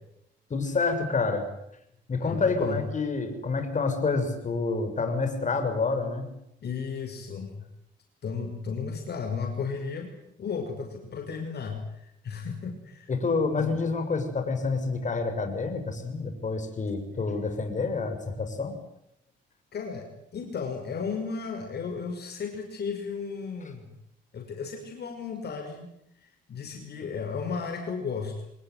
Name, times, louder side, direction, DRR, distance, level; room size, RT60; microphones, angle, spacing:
voice 1, 0.5-1.5 2.1-6.3 13.1-18.8, left 4 dB, 40° left, 6 dB, 6.7 m, -28 dB
voice 2, 2.2-2.8 6.6-7.7 8.2-10.1 10.4-13.1 13.6-13.8 19.7-23.9 24.3-25.9 26.2-28.3, left 5 dB, 55° left, 4 dB, 5.8 m, -34 dB
26.5 x 20.0 x 9.5 m, 0.78 s
cardioid pair, 90°, 20 cm